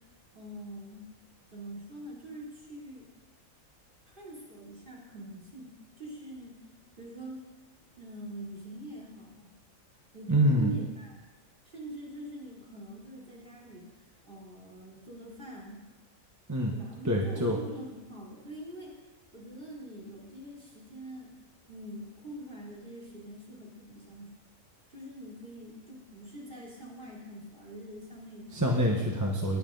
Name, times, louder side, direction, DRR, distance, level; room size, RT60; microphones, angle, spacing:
voice 1, 0.3-1.1 1.5-3.1 4.0-6.6 7.0-7.5 8.0-9.5 10.1-11.3 11.6-15.8 16.7-19.0 19.3-21.3 21.7-24.3 24.9-28.6, right 1 dB, 35° right, -4 dB, 3.5 m, -44 dB
voice 2, 10.3-10.7 16.5-16.7 17.0-17.6 28.5-29.6, equal, 15° right, -1 dB, 1.1 m, -26 dB
19.5 x 8.6 x 4.0 m, 1.1 s
omnidirectional pair, 1.5 m